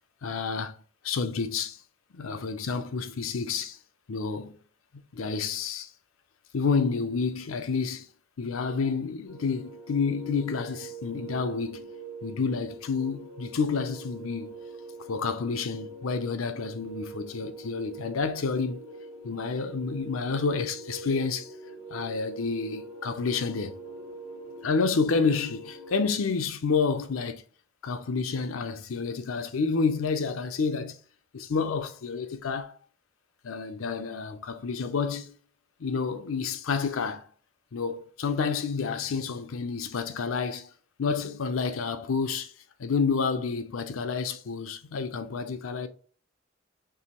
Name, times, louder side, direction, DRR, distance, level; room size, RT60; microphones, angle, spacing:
voice 1, 0.2-0.7 1.0-1.8 2.1-3.8 4.1-4.5 5.1-5.9 6.5-8.1 8.4-11.9 12.2-14.6 15.1-18.8 19.2-21.5 21.9-23.7 24.6-27.4 27.8-31.0 31.3-32.7 33.4-35.3 35.8-37.2 37.7-40.7 41.0-42.5 42.8-45.9, left 5 dB, 90° left, 0.5 m, -29 dB
sound 1, 9.3-26.1, right 3 dB, 50° right, 1.0 m, -43 dB
4.7 x 3.1 x 2.9 m
head